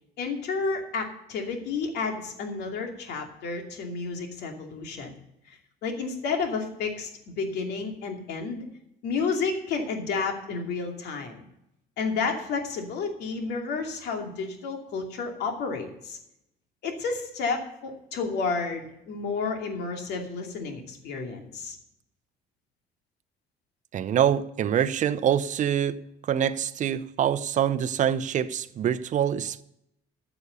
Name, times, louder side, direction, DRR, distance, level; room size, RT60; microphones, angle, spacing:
voice 1, 0.2-5.2 5.5-8.6 9.0-11.4 12.0-16.2 16.8-21.8, left 4 dB, 75° left, 2.7 m, -31 dB
voice 2, 23.9-26.0 26.3-29.6, right 9 dB, 45° right, 0.7 m, -25 dB
13.0 x 7.0 x 6.8 m
cardioid pair, 110°, 17 cm